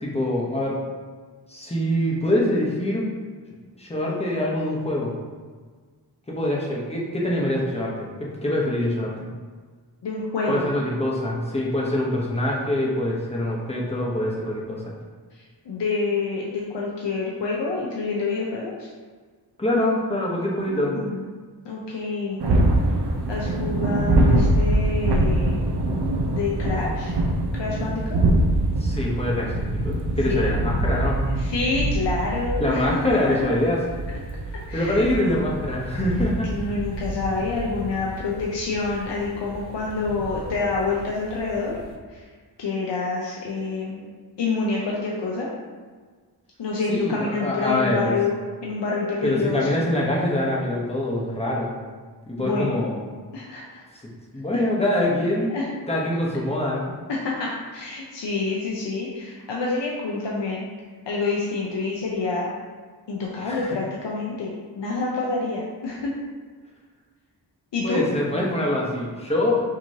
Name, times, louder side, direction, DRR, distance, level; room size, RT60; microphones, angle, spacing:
voice 1, 0.0-0.8 1.5-3.1 3.8-5.1 6.3-9.1 10.5-14.9 19.6-21.0 28.8-31.2 32.6-33.8 34.7-36.5 46.9-48.1 49.2-51.8 52.3-53.0 54.0-55.5 55.9-56.9 63.4-63.8 67.8-69.6, left 1 dB, 15° left, -4 dB, 0.9 m, -24 dB
voice 2, 10.0-10.7 15.3-18.9 20.7-21.3 21.6-22.4 23.3-25.6 26.3-27.2 27.5-28.2 30.2-30.5 31.3-33.5 34.7-35.1 36.5-41.7 42.1-42.2 42.6-44.1 44.4-45.5 46.6-48.3 48.6-49.8 52.4-52.9 53.3-53.8 54.5-54.6 55.5-55.7 57.1-60.6 61.1-62.5 63.1-66.1 67.7-68.0, left 3 dB, 90° left, -3 dB, 0.7 m, -27 dB
sound 1, 22.4-41.9, right 1 dB, 70° right, 0.7 m, -25 dB
6.2 x 3.0 x 2.8 m, 1.5 s
wide cardioid pair, 120°, 41 cm